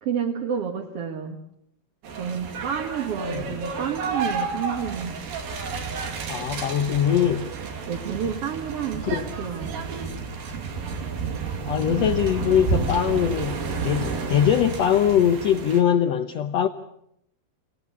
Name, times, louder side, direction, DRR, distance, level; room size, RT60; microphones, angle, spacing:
voice 1, 0.0-1.4 2.2-5.2 7.9-10.0, right 8 dB, 50° right, 2.2 m, -30 dB
sound 1, 2.0-15.8, right 4 dB, 80° right, 4.3 m, -31 dB
voice 2, 6.3-7.5 9.0-9.3 11.7-16.7, left 9 dB, 65° left, 1.8 m, -22 dB
29.0 x 17.0 x 8.5 m
omnidirectional pair, 3.9 m